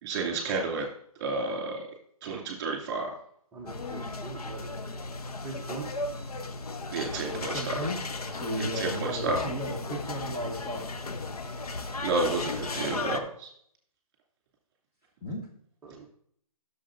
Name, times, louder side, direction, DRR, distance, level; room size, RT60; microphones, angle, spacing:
voice 1, 0.0-0.9 1.2-1.9 2.2-3.1 6.9-7.8 8.6-9.4 12.0-13.5, right 3 dB, 30° right, 1 dB, 2.5 m, -31 dB
voice 2, 3.5-4.7 5.4-6.1 15.8-16.1, right 5 dB, 10° right, -5 dB, 0.8 m, -42 dB
sound 1, 3.7-13.2, left 3 dB, 85° left, 0.9 m, -35 dB
voice 3, 7.3-10.9 15.2-15.5, equal, 20° left, -3 dB, 1.3 m, -35 dB
10.5 x 6.8 x 2.6 m, 0.63 s
hypercardioid pair, 155°, 19 cm